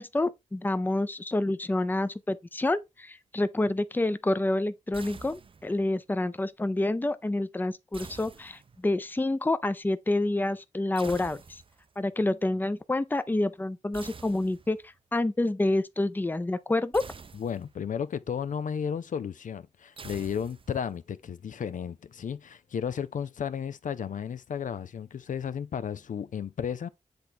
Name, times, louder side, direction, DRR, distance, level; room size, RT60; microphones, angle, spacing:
voice 1, 0.0-11.6 12.0-17.0, left 2 dB, 15° left, 0.5 m, -28 dB
sound 1, 4.9-5.9 7.9-9.0 10.9-11.9 13.9-14.9 16.9-17.9 20.0-21.0, right 5 dB, 45° right, 0.5 m, -47 dB
voice 2, 17.3-26.9, left 7 dB, 80° left, 0.5 m, -33 dB
7.9 x 3.4 x 4.3 m
wide cardioid pair, 95°, 13 cm